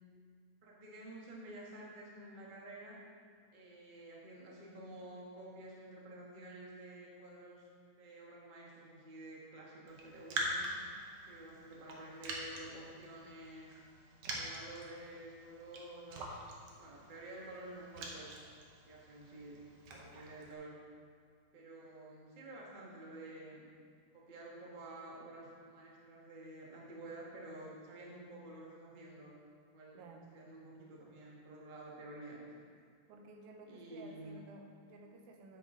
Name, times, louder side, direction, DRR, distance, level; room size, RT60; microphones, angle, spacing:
voice 1, 0.6-3.0 3.5-7.7 8.0-10.7 11.3-13.8 14.3-18.4 18.8-19.6 19.9-20.7 21.5-23.7 24.1-29.3 29.7-30.0 30.3-32.4 33.7-34.4, right 1 dB, 45° right, -3 dB, 0.6 m, -50 dB
Raindrop, 9.9-20.5, right 2 dB, 65° right, 1.9 m, -45 dB
voice 2, 30.0-30.3 33.1-35.6, right 2 dB, 85° right, 3 dB, 2.3 m, -54 dB
9.0 x 8.3 x 3.7 m, 2.2 s
omnidirectional pair, 3.4 m